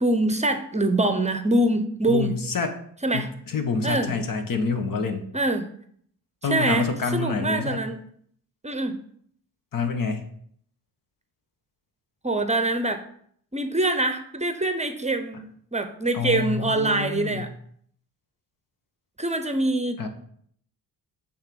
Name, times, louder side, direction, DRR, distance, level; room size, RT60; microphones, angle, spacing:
voice 1, 0.0-2.3 3.0-3.3 3.8-4.2 5.3-5.7 6.5-8.0 8.6-9.0 12.2-13.0 13.5-17.5 19.2-20.0, right 2 dB, 20° right, 8 dB, 0.8 m, -24 dB
voice 2, 2.1-2.7 3.1-5.3 6.4-7.8 9.7-10.3 16.1-17.5 20.0-20.1, left 4 dB, 60° left, 7 dB, 1.2 m, -27 dB
8.0 x 3.6 x 5.3 m, 0.63 s
cardioid pair, 70°, 38 cm